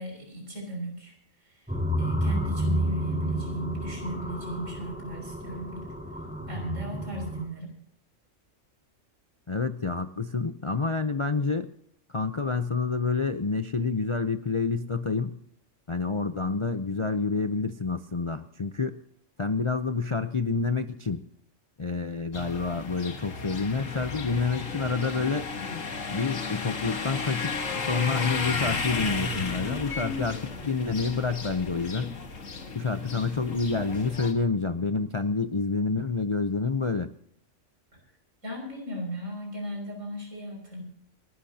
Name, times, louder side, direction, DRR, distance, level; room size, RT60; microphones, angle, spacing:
voice 1, 0.0-5.9 6.5-7.7 38.4-40.8, equal, 70° right, 1 dB, 6.0 m, -37 dB
sound 1, 1.7-7.4, right 1 dB, 5° right, 4.5 m, -30 dB
voice 2, 9.5-11.7 12.1-15.4 15.9-19.0 19.4-21.2 21.8-25.5 26.1-32.1 32.7-37.1, left 4 dB, 35° left, 8 dB, 0.5 m, -28 dB
sound 2, 22.3-34.3, left 4 dB, 75° left, 1.9 m, -34 dB
29.0 x 12.5 x 2.8 m, 0.69 s
omnidirectional pair, 1.4 m